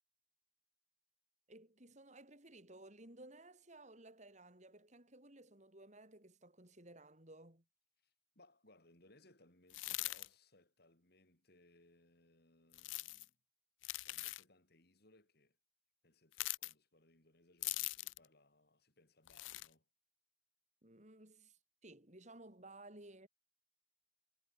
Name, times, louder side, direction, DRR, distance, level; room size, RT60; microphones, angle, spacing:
voice 1, 1.5-7.6 20.8-23.3, right 2 dB, 40° right, 5.8 m, -57 dB
voice 2, 8.0-13.4 14.0-15.6 16.0-19.9, left 2 dB, 55° left, 6.4 m, -69 dB
sound 1, 9.7-10.3 12.7-13.3 13.8-14.4 16.3-16.7 17.6-18.3 19.3-19.7, left 19 dB, 90° left, 0.4 m, -42 dB
head